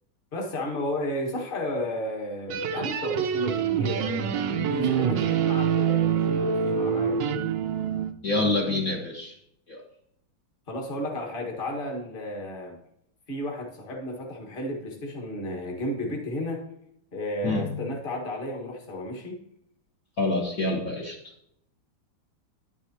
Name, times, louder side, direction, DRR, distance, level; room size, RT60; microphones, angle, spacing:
voice 1, 0.3-4.3 4.6-7.2 10.7-12.8 13.3-16.6 17.1-19.4, left 1 dB, 25° left, 0 dB, 1.6 m, -33 dB
sound 1, 2.5-8.1, right 7 dB, 65° right, 1.2 m, -25 dB
voice 2, 8.2-9.3 9.7-9.8 17.4-17.7 20.2-21.2, left 2 dB, 45° left, -4 dB, 1.5 m, -26 dB
10.5 x 9.6 x 2.9 m, 0.75 s
omnidirectional pair, 2.4 m